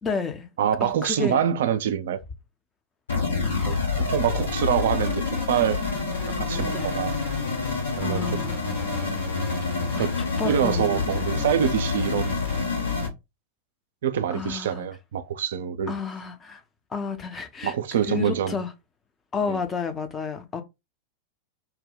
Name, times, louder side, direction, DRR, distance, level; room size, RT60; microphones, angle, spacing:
voice 1, 0.0-0.5 0.8-1.4 3.4-3.9 6.7-6.9 8.0-8.9 9.9-10.1 10.4-11.2 14.3-14.9 15.9-16.6 16.9-17.7 18.1-18.7 19.3-20.6, left 5 dB, 20° left, 0.6 m, -31 dB
voice 2, 0.6-2.2 3.6-5.8 6.2-7.2 7.6-8.5 10.0-10.1 10.4-12.4 14.0-15.9 17.6-18.6 19.5-19.6, right 9 dB, 60° right, 0.4 m, -26 dB
sound 1, 3.1-13.1, left 4 dB, 70° left, 1.2 m, -27 dB
2.8 x 2.1 x 3.9 m
figure-of-eight pair, 90°, 0 cm